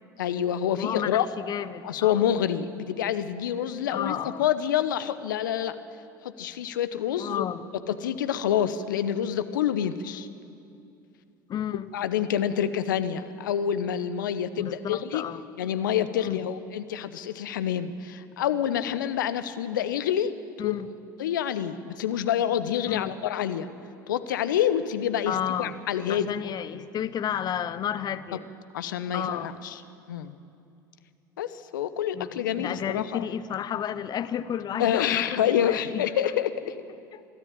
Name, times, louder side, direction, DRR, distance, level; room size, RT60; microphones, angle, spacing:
voice 1, 0.2-1.3 1.8-5.8 6.2-7.4 7.9-10.3 11.9-15.3 15.6-20.3 20.6-20.8 21.2-23.7 24.1-26.5 28.7-29.8 30.1-30.3 31.4-33.2 34.8-36.7, left 9 dB, 75° left, 13 dB, 0.9 m, -27 dB
voice 2, 0.8-2.2 3.9-4.5 7.2-7.6 11.5-11.9 14.6-15.5 16.3-16.4 20.6-20.9 22.9-23.1 25.3-25.8 26.1-28.5 29.1-29.6 32.1-36.1 37.1-37.2, left 9 dB, 40° left, 14 dB, 0.9 m, -32 dB
23.5 x 13.0 x 8.8 m, 2.6 s
hypercardioid pair, 70°, 11 cm